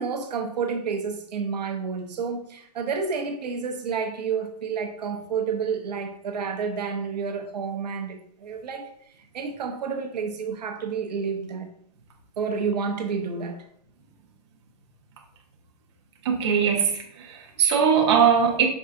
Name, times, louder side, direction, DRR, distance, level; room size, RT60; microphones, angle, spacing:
voice 1, 0.0-8.8 9.3-11.7 12.4-13.6, right 5 dB, 85° right, 4 dB, 0.8 m, -30 dB
voice 2, 16.2-18.7, right 7 dB, 45° right, 0 dB, 0.8 m, -21 dB
5.6 x 3.6 x 2.5 m, 0.67 s
hypercardioid pair, 175°, 21 cm